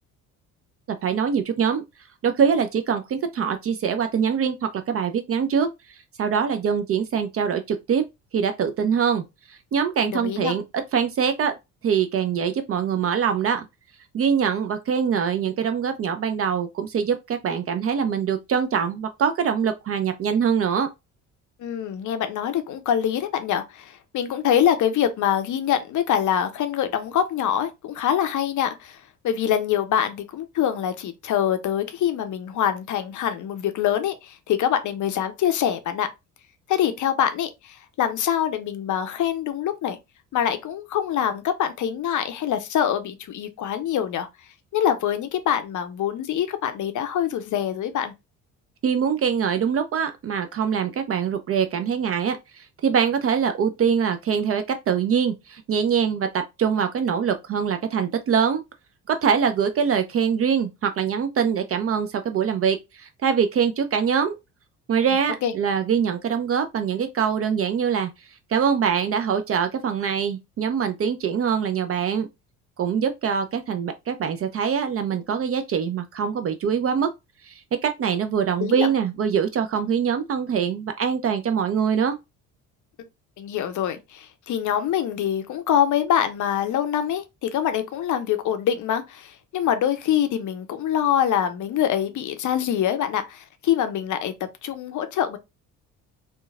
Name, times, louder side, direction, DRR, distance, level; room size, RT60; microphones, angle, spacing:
voice 1, 1.0-1.8 2.2-8.0 8.3-9.2 9.5-10.6 10.9-11.5 11.8-13.7 14.1-20.9 48.8-58.6 59.1-64.4 64.9-68.1 68.5-72.3 72.8-77.1 77.4-82.2, right 7 dB, 35° right, 0.4 m, -23 dB
voice 2, 10.0-10.6 21.6-29.0 29.2-36.1 36.7-40.0 40.3-44.3 44.7-48.1 65.4-65.5 78.6-78.9 83.4-94.3 94.6-95.4, left 9 dB, 45° left, 0.5 m, -24 dB
2.9 x 2.2 x 2.3 m
hypercardioid pair, 50°, 44 cm